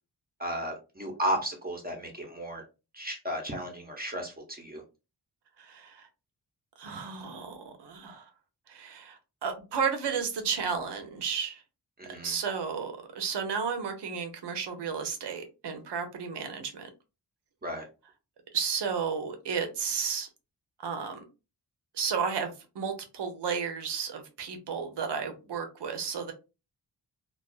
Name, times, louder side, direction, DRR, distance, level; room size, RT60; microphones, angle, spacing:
voice 1, 0.4-2.6 2.9-4.8 12.0-12.3 17.6-17.9, right 1 dB, 25° right, 0.7 m, -34 dB
voice 2, 5.6-6.1 6.8-8.3 8.7-11.6 12.2-16.9 18.5-20.3 20.8-21.2 21.9-26.3, right 6 dB, 85° right, 0.7 m, -33 dB
2.3 x 2.3 x 2.3 m
wide cardioid pair, 95°, 40 cm